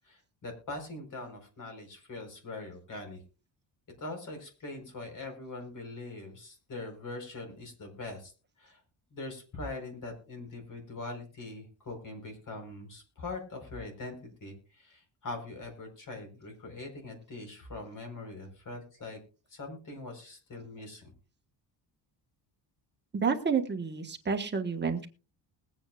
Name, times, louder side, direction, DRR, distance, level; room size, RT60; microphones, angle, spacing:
voice 1, 0.0-3.2 4.0-8.3 8.6-8.8 9.1-19.2 19.5-21.1, left 2 dB, 45° left, 4 dB, 4.7 m, -42 dB
voice 2, 23.1-25.1, right 5 dB, 25° right, 3 dB, 1.5 m, -30 dB
21.0 x 9.0 x 2.5 m, 0.35 s
cardioid pair, 145°, 44 cm